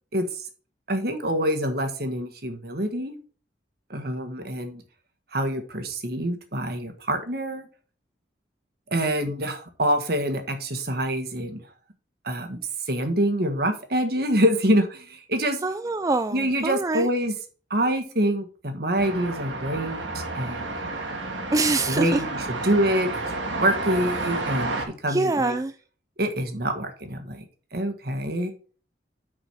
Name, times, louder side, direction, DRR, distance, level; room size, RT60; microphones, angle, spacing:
voice 1, 0.9-3.1 3.9-4.8 5.3-7.7 8.9-11.6 12.2-12.6 12.9-15.6 16.3-17.3 17.7-20.7 21.9-24.8 25.0-25.5 26.2-27.4 27.7-28.5, right 1 dB, 55° right, 6 dB, 1.6 m, -26 dB
voice 2, 15.6-17.1 21.5-22.2 22.6-22.7 25.1-25.8, right 3 dB, 20° right, 10 dB, 0.3 m, -25 dB
sound 1, 19.0-24.8, right 2 dB, 85° right, 2.7 m, -31 dB
6.2 x 6.2 x 6.4 m, 0.40 s
head